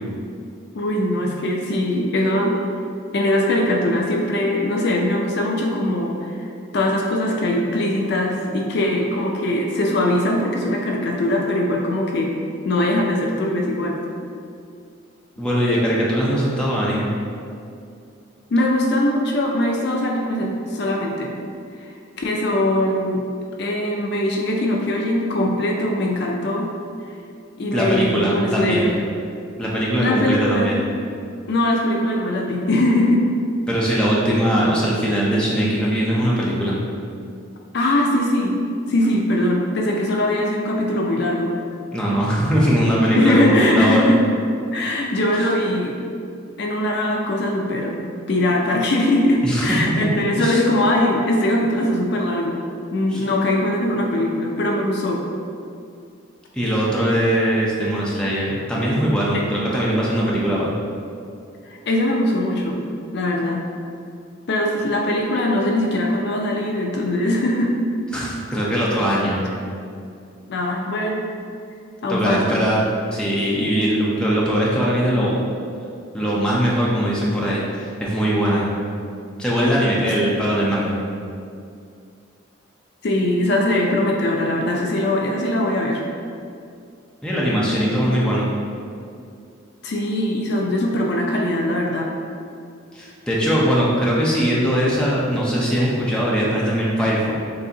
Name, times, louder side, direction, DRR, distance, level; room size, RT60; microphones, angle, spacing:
voice 1, 0.7-2.6 3.1-6.5 6.7-12.4 12.6-14.0 18.5-21.3 21.7-23.2 23.6-26.7 27.6-29.0 30.0-30.7 31.5-33.2 37.7-38.6 38.9-41.5 43.1-44.2 44.7-46.0 46.6-48.0 48.3-52.6 52.9-55.2 59.3-59.5 61.6-62.8 63.1-63.6 64.5-67.7 70.5-71.3 72.0-72.6 83.0-86.0 89.8-92.1, left 1 dB, 55° left, 0 dB, 0.4 m, -21 dB
voice 2, 15.4-17.1 27.7-29.0 29.6-30.8 33.7-36.8 41.9-44.1 49.4-49.8 50.4-50.6 53.1-53.2 56.5-60.7 68.1-69.4 72.1-75.4 76.1-78.7 79.4-81.0 87.2-88.5 92.9-97.3, equal, 5° left, -6 dB, 0.6 m, -20 dB
6.6 x 2.8 x 2.7 m, 2.4 s
head